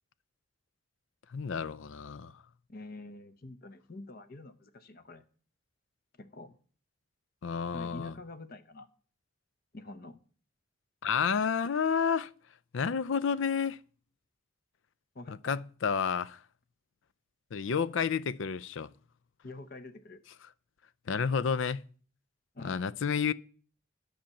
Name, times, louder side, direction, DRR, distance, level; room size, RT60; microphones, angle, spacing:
voice 1, 1.3-2.3 7.4-8.1 11.0-12.3 12.7-13.8 15.3-16.4 17.5-18.9 21.1-21.8 22.6-23.3, left 6 dB, 75° left, 0.5 m, -30 dB
voice 2, 2.7-5.2 6.1-6.6 7.7-8.9 9.7-10.2 15.1-15.6 19.4-20.2 22.5-22.9, left 2 dB, 50° left, 0.9 m, -47 dB
10.5 x 5.7 x 7.1 m
head